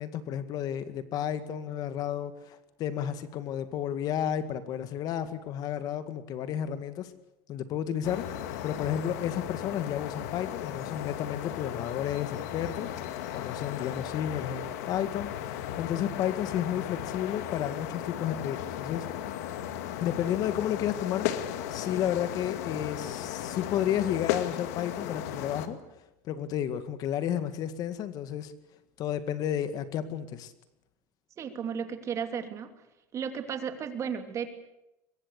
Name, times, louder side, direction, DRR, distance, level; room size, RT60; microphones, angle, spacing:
voice 1, 0.0-7.1 7.5-8.3 8.6-12.9 13.3-19.1 20.0-21.3 21.7-25.8 26.2-28.5 29.0-30.5, left 10 dB, 50° left, 11 dB, 2.1 m, -32 dB
sound 1, 8.0-25.7, left 11 dB, 85° left, 2.2 m, -36 dB
voice 2, 31.4-32.7 33.1-34.5, right 7 dB, 35° right, 7 dB, 3.0 m, -34 dB
23.5 x 22.0 x 8.3 m, 0.91 s
supercardioid pair, 125°, 8 cm